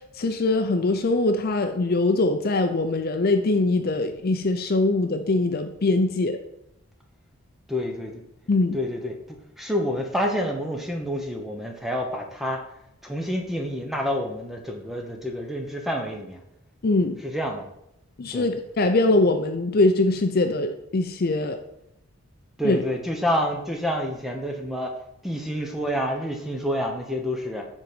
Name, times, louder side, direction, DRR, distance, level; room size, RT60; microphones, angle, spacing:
voice 1, 0.2-6.4 8.5-8.8 16.8-17.2 18.2-21.6 22.6-22.8, left 2 dB, 45° left, 7 dB, 0.5 m, -22 dB
voice 2, 7.7-8.2 8.7-12.6 13.0-16.4 17.2-17.6 18.3-18.5 22.6-24.9 25.2-27.7, equal, ahead, 2 dB, 0.9 m, -28 dB
7.2 x 4.0 x 6.6 m, 0.81 s
head